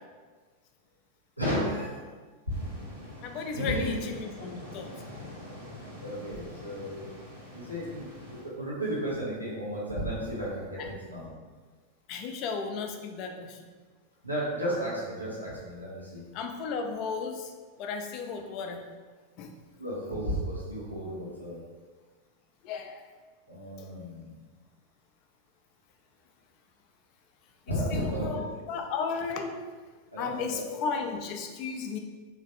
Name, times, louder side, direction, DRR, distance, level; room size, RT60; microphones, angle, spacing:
voice 1, 1.4-2.0 3.5-4.0 6.0-7.0 7.5-8.0 8.6-11.4 14.2-16.3 19.8-21.6 23.5-24.3 27.7-28.4 30.1-30.7, equal, 90° right, -7 dB, 0.7 m, -33 dB
sound 1, 2.5-8.5, left 1 dB, 60° right, 1.0 m, -45 dB
voice 2, 3.2-4.9 10.8-10.9 12.1-13.6 16.3-17.5 17.8-18.8 19.4-19.6 22.6-23.0 23.8-23.9 27.7-29.6 30.2-32.0, left 5 dB, 40° left, 4 dB, 0.3 m, -34 dB
3.1 x 2.4 x 2.6 m, 1.4 s
figure-of-eight pair, 90°, 0 cm